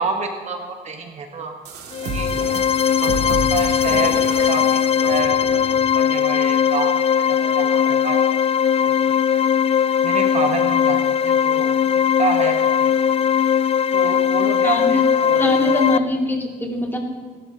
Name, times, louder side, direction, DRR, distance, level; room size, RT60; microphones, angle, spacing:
voice 1, 0.0-1.5 2.0-2.3 3.0-5.4 5.7-8.2 8.8-8.9 9.3-9.5 10.0-12.9 13.9-15.8, right 3 dB, 40° right, 4 dB, 1.1 m, -28 dB
sound 1, 1.6-5.8, right 3 dB, 75° right, 2.2 m, -31 dB
sound 2, 1.9-16.0, left 8 dB, 35° left, 0.4 m, -19 dB
voice 2, 14.6-15.0 15.3-17.0, left 1 dB, 10° left, 0 dB, 2.3 m, -23 dB
19.5 x 12.0 x 2.8 m, 1.5 s
cardioid pair, 110°, 17 cm